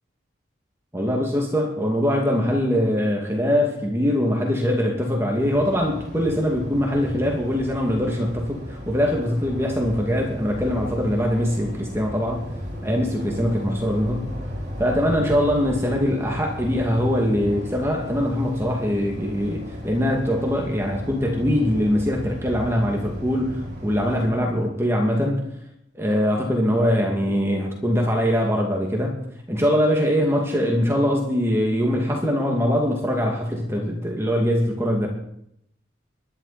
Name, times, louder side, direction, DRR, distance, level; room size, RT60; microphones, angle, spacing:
voice 1, 0.9-12.5 12.8-14.3 14.8-25.4 25.9-29.2 29.5-35.1, equal, 15° right, 0 dB, 2.3 m, -22 dB
sound 1, 5.4-24.3, equal, 40° right, 5.6 m, -35 dB
22.0 x 11.5 x 4.3 m, 0.75 s
head